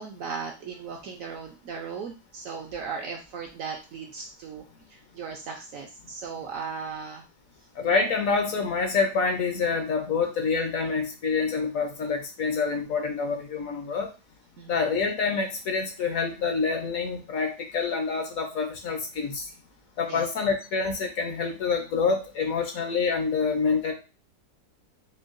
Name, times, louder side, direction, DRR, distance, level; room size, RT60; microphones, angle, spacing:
voice 1, 0.0-4.6 4.9-7.2 14.6-14.8 20.1-20.2, right 5 dB, 70° right, 2 dB, 0.8 m, -37 dB
voice 2, 7.8-14.1 14.7-19.4 20.0-23.9, left 5 dB, 65° left, 3 dB, 1.0 m, -27 dB
4.5 x 2.2 x 2.5 m, 0.30 s
omnidirectional pair, 1.7 m